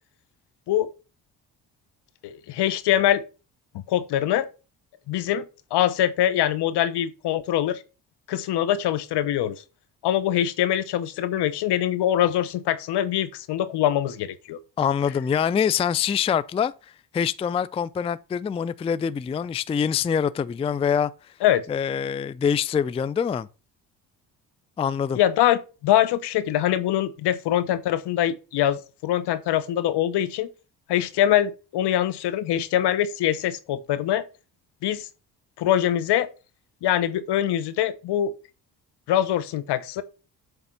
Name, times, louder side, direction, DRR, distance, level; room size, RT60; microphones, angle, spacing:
voice 1, 2.2-3.2 3.9-4.5 5.1-5.5 5.7-7.8 8.3-9.6 10.0-14.6 21.4-21.6 25.2-30.5 30.9-34.2 34.8-35.1 35.6-36.3 36.8-38.4 39.1-40.0, left 11 dB, 75° left, 0.9 m, -23 dB
voice 2, 14.8-16.7 17.1-21.1 21.7-23.5 24.8-25.2, left 7 dB, 15° left, 0.3 m, -24 dB
7.9 x 3.6 x 5.5 m
supercardioid pair, 65°, 42 cm